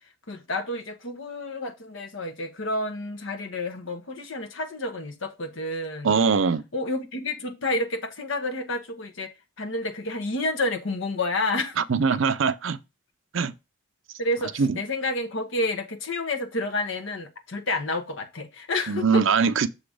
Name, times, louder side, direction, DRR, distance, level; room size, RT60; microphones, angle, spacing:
voice 1, 0.0-6.2 6.7-9.3 9.6-11.8 12.1-12.2 14.2-19.2, left 2 dB, 80° left, 1.2 m, -30 dB
voice 2, 6.0-6.6 11.9-12.8 13.3-13.5 14.6-14.7 18.9-19.7, right 5 dB, 80° right, 0.5 m, -21 dB
6.8 x 4.0 x 4.9 m
head